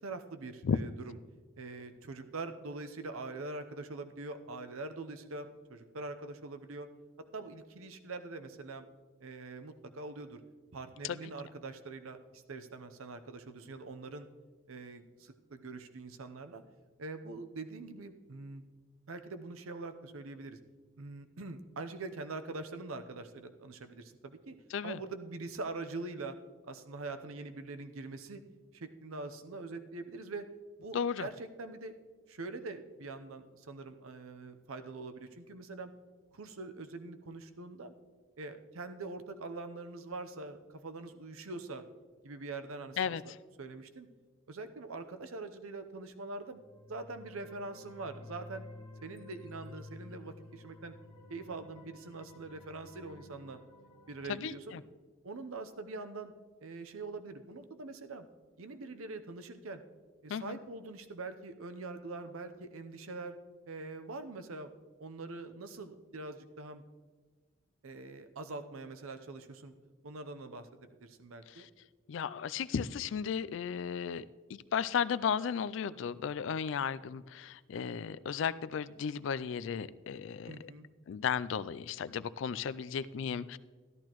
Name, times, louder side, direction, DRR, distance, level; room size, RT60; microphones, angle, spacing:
voice 1, 0.0-1.2 1.6-6.9 7.3-8.9 9.2-10.4 10.7-14.3 14.7-16.6 17.0-18.6 19.1-20.6 21.0-24.6 24.8-26.4 26.6-28.4 28.7-30.5 30.8-31.9 32.3-35.9 36.3-37.9 38.4-41.8 42.2-44.1 44.5-46.6 46.9-48.7 49.0-51.0 51.3-53.6 54.1-54.8 55.2-56.3 56.6-58.3 58.6-59.8 60.2-63.4 63.7-64.7 65.0-66.8 67.8-69.7 70.0-71.7 80.4-80.9, right 3 dB, 85° right, 9 dB, 0.8 m, -43 dB
voice 2, 30.9-31.3 43.0-43.2 54.3-54.8 60.3-60.6 72.1-74.2 74.5-80.7 81.1-83.6, left 7 dB, 65° left, 17 dB, 0.3 m, -34 dB
sound 1, 46.5-54.4, left 2 dB, 25° left, 1.5 m, -52 dB
13.5 x 11.5 x 3.0 m, 1.4 s
head